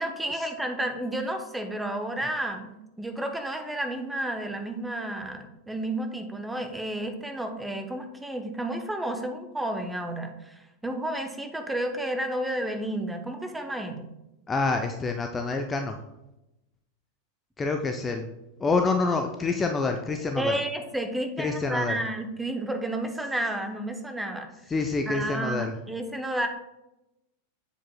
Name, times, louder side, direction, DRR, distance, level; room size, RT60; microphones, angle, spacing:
voice 1, 0.0-14.0 20.4-24.5 25.1-26.5, right 1 dB, 5° right, 6 dB, 0.8 m, -31 dB
voice 2, 14.5-16.0 17.6-18.2 18.6-20.6 21.4-22.0 24.7-25.7, left 3 dB, 15° left, 4 dB, 0.5 m, -27 dB
7.4 x 6.8 x 2.2 m, 0.92 s
figure-of-eight pair, 90°, 0 cm